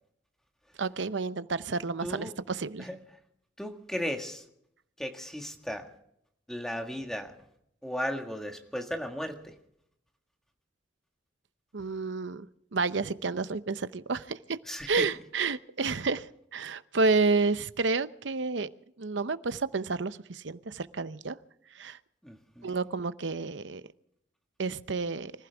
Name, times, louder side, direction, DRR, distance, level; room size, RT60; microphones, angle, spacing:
voice 1, 0.8-2.9 11.7-12.5 12.7-14.6 14.9-18.7 19.0-21.4 21.7-22.0 22.6-23.8 24.6-25.3, right 4 dB, 85° right, 14 dB, 0.8 m, -30 dB
voice 2, 2.0-2.3 2.8-3.0 3.6-4.4 5.0-5.8 6.5-7.3 7.8-9.4 14.7-15.0 22.2-22.8, equal, 5° left, 4 dB, 1.8 m, -35 dB
26.0 x 15.5 x 3.5 m, 0.74 s
head